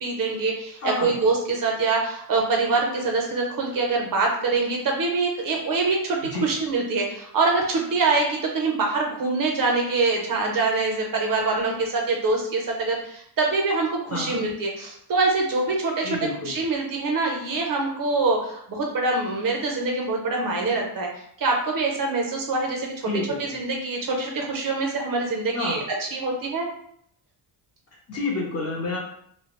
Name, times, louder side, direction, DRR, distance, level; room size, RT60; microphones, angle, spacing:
voice 1, 0.0-16.1 16.4-21.1 21.4-22.9 23.4-26.7, right 3 dB, 45° right, 1 dB, 0.6 m, -24 dB
voice 2, 0.8-1.2 6.2-6.5 14.1-14.4 16.0-16.5 23.1-23.4 25.5-25.8 28.1-29.0, left 3 dB, 35° left, -3 dB, 0.5 m, -29 dB
2.2 x 2.0 x 2.9 m, 0.70 s
cardioid pair, 130°, 47 cm